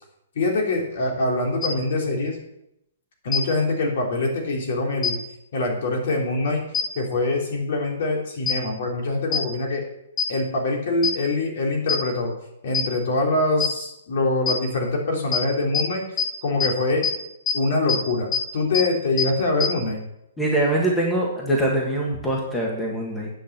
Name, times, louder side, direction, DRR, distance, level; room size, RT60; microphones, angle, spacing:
voice 1, 0.3-2.4 3.2-5.2 5.5-6.6 6.9-9.8 10.3-12.3 12.6-16.0 16.4-17.1 17.5-20.0, left 2 dB, 55° left, 0 dB, 3.3 m, -24 dB
sound 1, 1.6-1.7 3.3-3.4 5.0-5.1 6.7-6.8 8.5-8.6 9.3-9.4 10.2-10.3 11.0-11.1 11.9-12.0 12.7-12.8 13.6-13.7 14.5-14.6 15.3-15.4 15.7-15.8 16.2-16.3 16.6-16.7 17.0-17.1 17.5-17.6 17.9-18.0 18.3-18.4 18.7-18.8 19.2-19.3 19.6-19.7, left 8 dB, 25° left, 3.7 m, -22 dB
voice 2, 20.4-23.3, right 1 dB, 5° left, -3 dB, 1.8 m, -23 dB
9.9 x 6.3 x 7.5 m, 0.82 s
hypercardioid pair, 165°, 0 cm